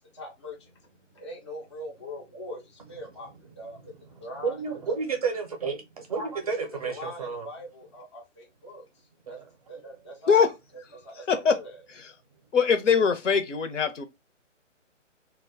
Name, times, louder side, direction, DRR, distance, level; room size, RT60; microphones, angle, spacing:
voice 1, 0.1-4.6 6.8-9.4 9.7-10.5 10.9-11.8, left 1 dB, 25° left, 0.3 m, -42 dB
voice 2, 3.9-7.5 9.3-9.5, right 5 dB, 30° right, 0.5 m, -31 dB
voice 3, 11.3-11.6 11.9-12.1 12.5-14.0, left 6 dB, 75° left, 0.7 m, -22 dB
2.2 x 2.0 x 3.4 m
figure-of-eight pair, 145°, 37 cm